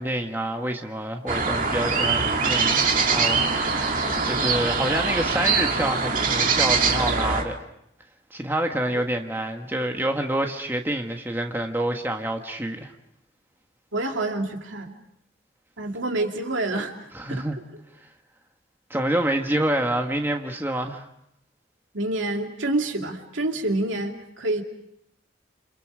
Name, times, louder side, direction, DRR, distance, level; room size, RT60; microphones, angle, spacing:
voice 1, 0.0-3.9 4.2-7.6 8.3-12.9 17.1-17.6 18.9-21.1, right 1 dB, 10° right, 3 dB, 1.5 m, -27 dB
sound 1, 1.3-7.4, right 4 dB, 45° right, 2.2 m, -23 dB
voice 2, 13.9-14.9 15.8-17.4 21.9-24.6, right 2 dB, 85° right, 3 dB, 2.6 m, -27 dB
28.5 x 27.5 x 5.0 m, 0.76 s
head